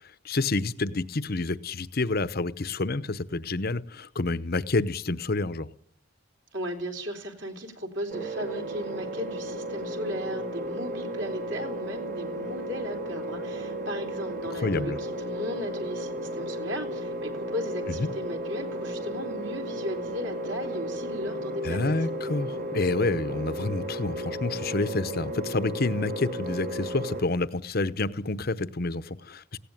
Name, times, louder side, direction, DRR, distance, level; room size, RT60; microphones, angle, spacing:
voice 1, 0.2-5.7 14.6-15.0 21.6-29.6, left 2 dB, 45° left, 14 dB, 0.8 m, -28 dB
voice 2, 6.5-21.9, equal, 60° right, 3 dB, 3.8 m, -36 dB
sound 1, 8.1-27.2, equal, 40° right, 1.3 m, -34 dB
18.5 x 16.5 x 9.2 m, 0.67 s
head